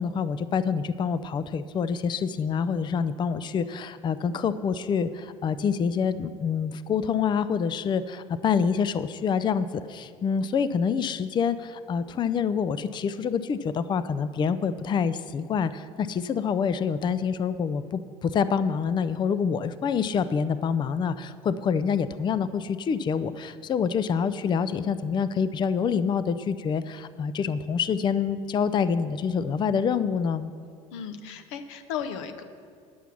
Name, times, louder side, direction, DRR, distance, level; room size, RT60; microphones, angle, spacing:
voice 1, 0.0-30.5, left 6 dB, 30° left, 14 dB, 0.4 m, -26 dB
voice 2, 30.9-32.4, left 8 dB, 70° left, 8 dB, 0.8 m, -35 dB
10.0 x 6.9 x 6.0 m, 2.1 s
figure-of-eight pair, 65°, 17 cm